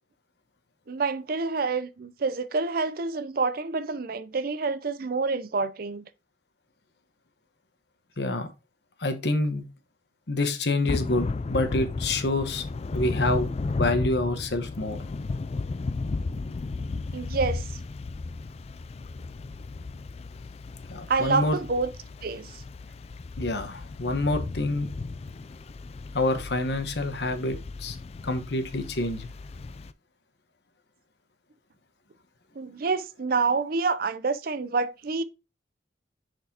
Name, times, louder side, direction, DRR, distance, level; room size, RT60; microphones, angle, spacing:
voice 1, 0.9-6.0 17.1-17.8 21.1-21.9 22.2-22.6 32.6-35.2, right 4 dB, 55° right, 0.5 m, -27 dB
voice 2, 8.2-8.5 9.0-9.7 10.3-12.6 12.9-13.5 13.8-15.0 20.9-21.6 23.4-24.9 26.1-28.0 28.2-29.3, left 2 dB, 65° left, 1.2 m, -27 dB
Thunder / Rain, 10.9-29.9, left 3 dB, 35° left, 0.3 m, -34 dB
6.5 x 6.1 x 2.8 m
head